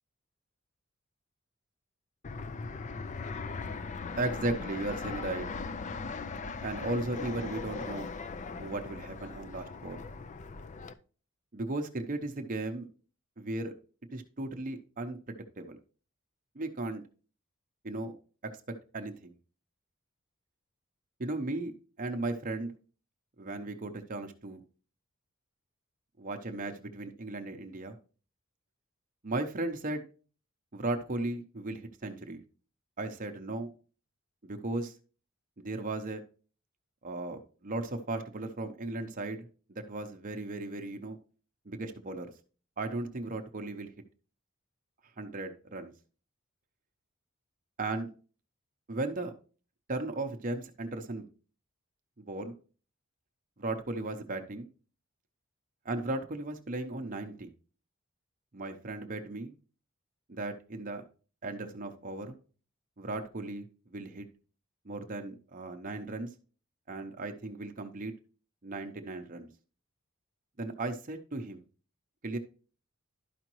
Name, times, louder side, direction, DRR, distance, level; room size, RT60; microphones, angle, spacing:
Fixed-wing aircraft airplane, 2.2-10.9, left 4 dB, 35° left, 0.4 m, -39 dB
voice 1, 4.2-5.5 6.6-8.1 8.6-10.0 11.5-12.9 13.4-13.7 14.1-15.8 16.6-17.0 17.8-18.1 18.4-18.5 18.9-19.3 21.2-22.7 23.4-24.6 26.2-28.0 29.2-30.0 30.7-32.4 33.0-33.7 34.4-34.9 35.6-36.2 37.0-41.2 41.7-42.3 42.8-43.9 45.2-45.9 47.8-48.1 48.9-49.3 49.9-51.3 52.2-52.5 53.6-54.7 55.8-57.5 58.5-59.5 60.3-61.0 61.4-62.4 63.0-64.3 64.8-66.3 66.9-68.1 68.6-69.5 70.6-71.6 72.2-72.4, right 2 dB, 40° right, 5 dB, 0.7 m, -36 dB
12.0 x 5.0 x 3.0 m, 0.37 s
head